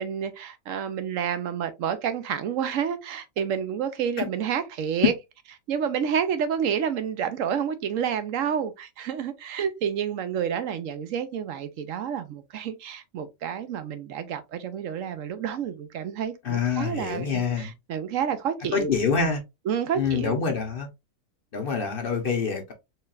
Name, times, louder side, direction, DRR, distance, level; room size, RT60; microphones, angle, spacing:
voice 1, 0.0-5.1 5.7-19.3 19.7-20.4, right 8 dB, 70° right, 1.0 m, -29 dB
voice 2, 16.4-17.7 18.7-19.4 19.9-20.9 21.5-22.7, left 6 dB, 50° left, 0.8 m, -26 dB
4.4 x 3.3 x 2.4 m
omnidirectional pair, 1.4 m